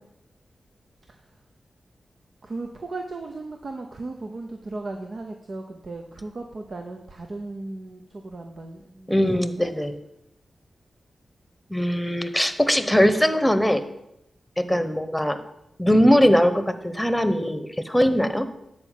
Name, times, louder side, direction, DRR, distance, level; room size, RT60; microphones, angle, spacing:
voice 1, 2.4-9.7 14.6-14.9, right 2 dB, 60° right, 4 dB, 0.8 m, -36 dB
voice 2, 9.1-9.9 11.7-13.8 14.6-15.4 15.8-18.5, equal, 5° left, 10 dB, 1.0 m, -20 dB
9.7 x 4.6 x 7.2 m, 0.84 s
cardioid pair, 50°, 0 cm